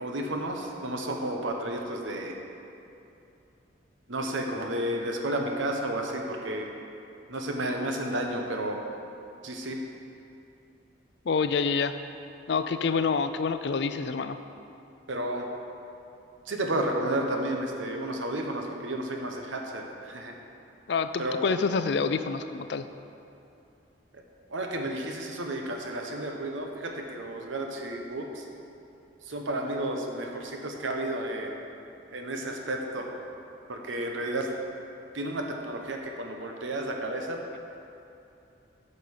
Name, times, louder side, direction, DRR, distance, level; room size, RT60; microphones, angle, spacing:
voice 1, 0.0-2.4 4.1-6.7 7.3-8.8 9.4-9.8 15.1-15.5 16.5-20.3 21.2-21.5 24.5-28.5 29.2-31.6 32.1-33.1 33.7-34.5 35.1-37.4, right 1 dB, 80° right, 2 dB, 1.0 m, -32 dB
voice 2, 11.3-12.0 12.5-14.4 20.9-22.9, left 5 dB, 60° left, 10 dB, 0.4 m, -27 dB
8.7 x 5.4 x 6.5 m, 2.7 s
head